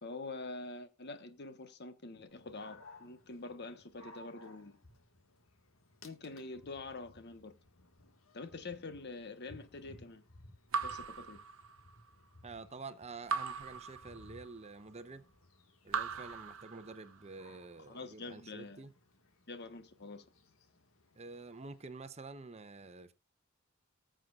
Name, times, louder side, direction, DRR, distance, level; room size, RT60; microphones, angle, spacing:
voice 1, 0.0-4.8 6.0-7.5 8.3-10.2 10.8-11.4 17.8-18.9 19.5-20.3, left 3 dB, 55° left, 1.2 m, -46 dB
Dog, 2.3-21.9, left 1 dB, 85° left, 1.8 m, -60 dB
Raindrop / Drip, 10.7-12.1 13.3-14.7 15.9-17.3, right 5 dB, 80° right, 0.8 m, -39 dB
voice 2, 12.4-15.3 15.8-18.9 21.1-23.1, right 3 dB, 30° right, 0.8 m, -48 dB
19.5 x 7.6 x 2.4 m
head